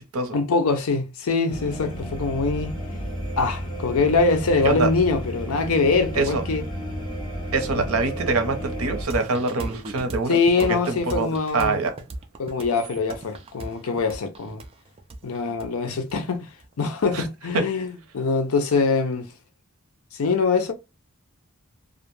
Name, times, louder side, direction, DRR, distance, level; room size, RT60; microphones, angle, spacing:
voice 1, 0.3-2.8 3.4-6.6 7.7-7.8 10.3-11.8 12.4-14.6 15.2-16.5 16.8-19.3 20.1-20.7, left 4 dB, 80° left, 0.5 m, -23 dB
sound 1, 1.5-9.0, equal, 20° left, 0.7 m, -32 dB
voice 2, 7.5-11.3 11.5-11.9 17.1-17.3 17.5-17.6, right 3 dB, 80° right, 0.7 m, -24 dB
sound 2, 9.1-16.6, right 2 dB, 25° right, 0.3 m, -37 dB
2.4 x 2.1 x 3.0 m
head